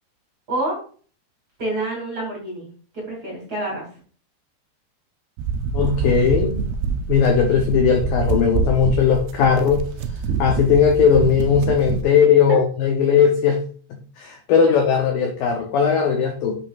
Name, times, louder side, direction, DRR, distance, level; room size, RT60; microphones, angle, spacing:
voice 1, 0.5-0.8 1.6-2.7 2.9-3.9, right 1 dB, 35° right, -2 dB, 2.5 m, -27 dB
sound 1, 5.4-12.0, right 4 dB, 85° right, 2.3 m, -25 dB
voice 2, 5.7-6.6 7.1-9.9 10.4-13.6 13.9-16.6, left 7 dB, 90° left, 2 dB, 2.0 m, -18 dB
10.0 x 5.9 x 2.4 m, 0.42 s
omnidirectional pair, 5.4 m